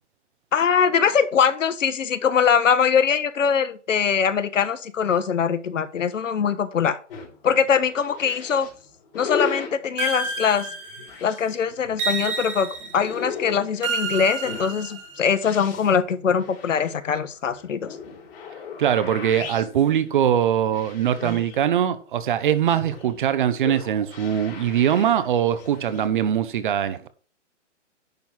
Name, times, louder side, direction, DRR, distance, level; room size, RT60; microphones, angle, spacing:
voice 1, 0.5-7.0 7.4-8.7 9.1-10.7 11.2-17.9, left 7 dB, 90° left, 1.2 m, -22 dB
sound 1, 7.1-26.1, left 5 dB, 50° left, 3.9 m, -37 dB
sound 2, 10.0-11.3 12.0-13.1 13.8-15.3, right 3 dB, 15° right, 1.8 m, -29 dB
voice 2, 18.8-27.1, right 9 dB, 45° right, 0.9 m, -22 dB
10.5 x 3.8 x 6.1 m
hypercardioid pair, 160°, 37 cm